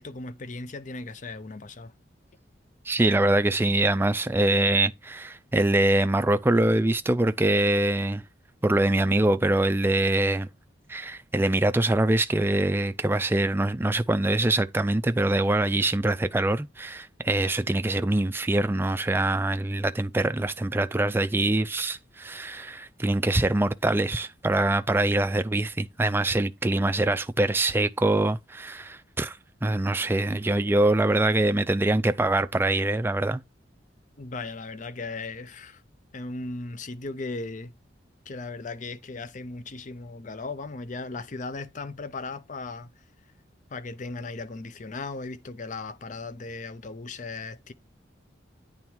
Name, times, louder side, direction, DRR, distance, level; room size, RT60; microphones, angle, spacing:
voice 1, 0.0-1.9 34.2-35.8 36.1-37.7 38.3-42.9 43.7-47.7, left 3 dB, 45° left, 0.6 m, -37 dB
voice 2, 2.9-8.2 8.6-10.5 10.9-33.4, right 1 dB, 10° right, 0.4 m, -24 dB
8.9 x 3.4 x 4.5 m
head